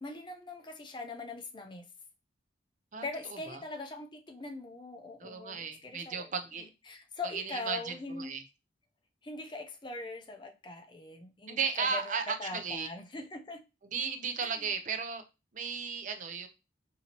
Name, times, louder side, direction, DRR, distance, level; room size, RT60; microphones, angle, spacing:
voice 1, 0.0-1.9 3.0-6.3 6.9-8.3 9.2-13.6 14.4-14.7, left 2 dB, 25° left, 0.5 m, -42 dB
voice 2, 5.2-6.7 7.2-8.4 11.5-12.9 13.9-15.2 15.5-16.5, right 5 dB, 40° right, 0.5 m, -35 dB
5.3 x 2.7 x 2.9 m
head